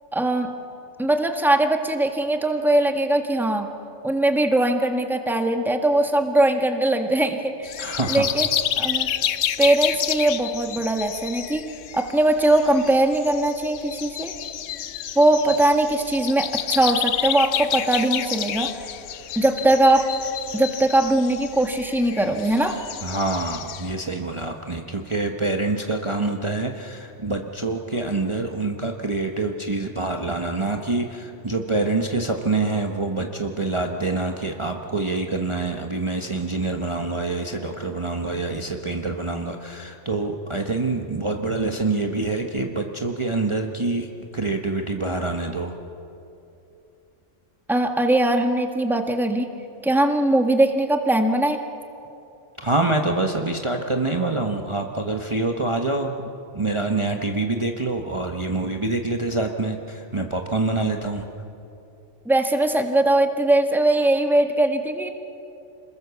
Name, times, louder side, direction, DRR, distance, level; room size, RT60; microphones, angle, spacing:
voice 1, 0.1-0.5 1.0-3.7 4.0-7.7 8.1-8.5 8.8-9.1 9.6-11.7 11.9-14.3 15.1-18.7 19.3-20.1 20.5-22.8 47.7-49.5 49.8-51.6 62.2-65.1, right 1 dB, ahead, 4 dB, 1.4 m, -20 dB
sound 1, 7.6-23.9, left 10 dB, 85° left, 1.1 m, -29 dB
voice 2, 7.8-8.3 23.0-44.1 44.3-45.7 52.6-56.1 56.5-61.2, right 2 dB, 25° right, 2 dB, 1.2 m, -26 dB
27.5 x 21.0 x 7.0 m, 2.8 s
omnidirectional pair, 1.3 m